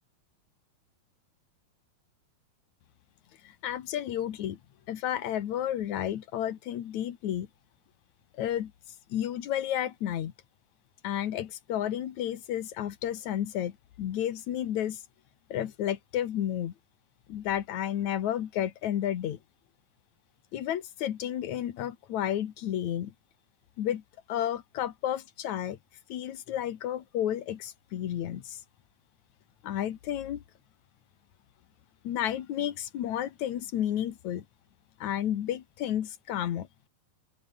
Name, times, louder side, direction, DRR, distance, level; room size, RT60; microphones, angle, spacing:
voice 1, 3.4-4.6 4.9-7.5 8.4-8.7 9.1-10.3 11.0-15.0 15.5-16.7 17.3-19.4 20.5-23.1 23.8-24.0 24.3-25.8 26.1-28.6 29.6-30.4 32.0-34.4 35.0-36.7, left 11 dB, 60° left, 2.5 m, -32 dB
open air
omnidirectional pair, 4.2 m